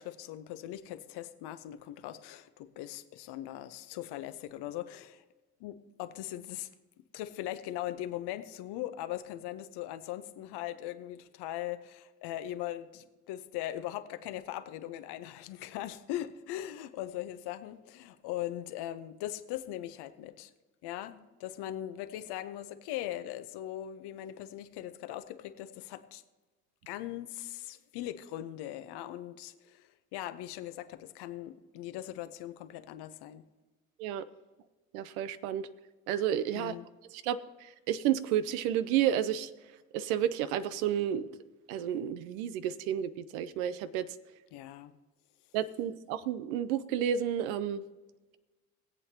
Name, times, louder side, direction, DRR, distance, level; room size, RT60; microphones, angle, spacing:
voice 1, 0.0-5.2 5.6-6.7 7.1-20.5 20.8-26.2 26.9-33.5 36.5-36.9 44.5-44.9, left 13 dB, 65° left, 11 dB, 0.9 m, -40 dB
voice 2, 34.9-35.7 36.1-36.7 37.1-39.5 39.9-41.3 41.7-44.1 45.5-47.8, right 10 dB, 75° right, 14 dB, 0.7 m, -31 dB
21.5 x 8.2 x 2.9 m, 1.2 s
hypercardioid pair, 50°, 42 cm